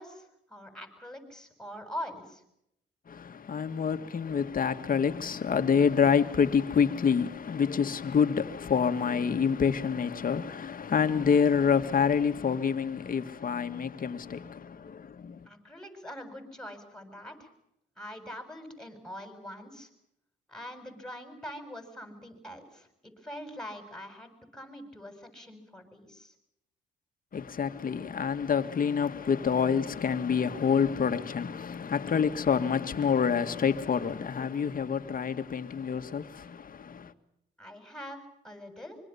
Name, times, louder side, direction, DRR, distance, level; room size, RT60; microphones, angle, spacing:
voice 1, 0.0-2.4 15.5-17.5 18.0-19.9 20.5-26.3 37.6-39.0, equal, 5° left, 7.7 m, -43 dB
voice 2, 3.1-15.4 27.3-37.1, left 6 dB, 45° left, 2.0 m, -27 dB
25.0 x 24.0 x 7.1 m
cardioid pair, 90°, 20 cm